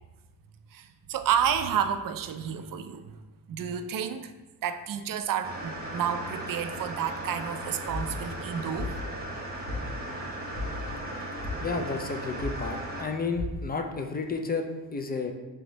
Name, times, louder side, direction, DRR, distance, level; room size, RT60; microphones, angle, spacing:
voice 1, 0.7-3.1 3.5-4.3 4.6-8.9, right 8 dB, 45° right, 9 dB, 0.5 m, -30 dB
sound 1, 5.4-13.1, right 1 dB, 20° right, 0.9 m, -37 dB
sound 2, 7.9-8.3 8.7-9.2 9.6-10.1 10.5-10.9 11.4-12.0 12.3-12.8 13.3-13.5, left 3 dB, 70° left, 1.0 m, -35 dB
voice 2, 11.6-15.3, left 4 dB, 20° left, 4 dB, 0.4 m, -32 dB
3.4 x 3.4 x 3.9 m, 1.1 s
supercardioid pair, 55°, 48 cm